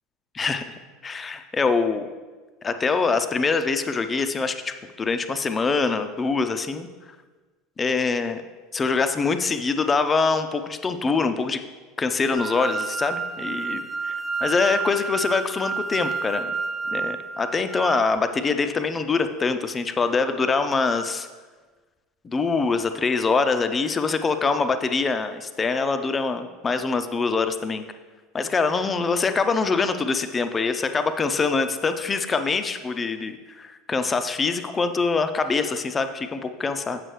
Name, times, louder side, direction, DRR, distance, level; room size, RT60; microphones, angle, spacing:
voice 1, 1.0-2.1 2.6-6.9 7.8-8.4 8.7-11.6 12.0-13.8 14.4-16.5 16.9-21.3 22.2-27.8 28.3-37.0, left 4 dB, 25° left, 9 dB, 0.5 m, -24 dB
sound 1, 12.4-18.2, right 4 dB, 10° right, 0.7 m, -30 dB
7.4 x 6.5 x 3.2 m, 1.3 s
hypercardioid pair, 75°, 0 cm